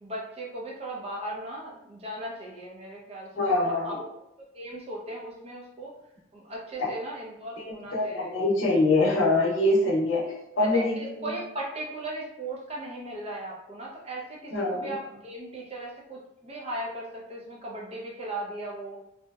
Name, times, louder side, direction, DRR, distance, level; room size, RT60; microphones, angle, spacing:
voice 1, 0.0-4.0 4.5-6.0 6.3-8.4 10.6-19.0, right 1 dB, 30° right, -3 dB, 0.5 m, -37 dB
voice 2, 3.3-3.9 6.8-6.9 7.6-10.2 10.6-11.3 14.5-14.9, left 2 dB, 75° left, -2 dB, 0.7 m, -24 dB
2.7 x 2.1 x 2.3 m, 0.86 s
head